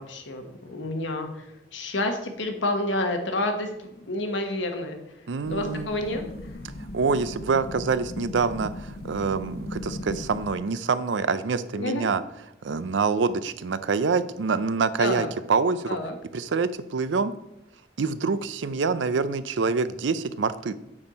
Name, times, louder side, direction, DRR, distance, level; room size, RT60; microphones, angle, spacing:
voice 1, 0.0-5.0 5.5-6.2 11.7-12.1 15.0-15.3 15.9-16.1, left 1 dB, 90° left, 4 dB, 1.3 m, -29 dB
voice 2, 5.3-5.9 6.9-12.2 12.6-16.0 16.3-17.3 18.0-20.7, right 4 dB, 85° right, 14 dB, 0.5 m, -26 dB
sound 1, 5.4-10.5, left 2 dB, 55° left, 0.8 m, -37 dB
8.6 x 4.5 x 5.2 m, 0.83 s
head